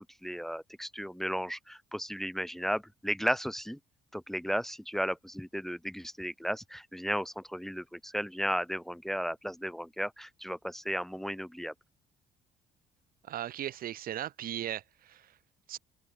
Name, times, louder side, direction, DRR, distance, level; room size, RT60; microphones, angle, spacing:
voice 1, 0.2-3.8 4.1-11.7, equal, ahead, 0.8 m, -34 dB
voice 2, 13.3-15.3 15.7-15.8, right 12 dB, 60° right, 1.6 m, -37 dB
open air
cardioid pair, 110°, 17 cm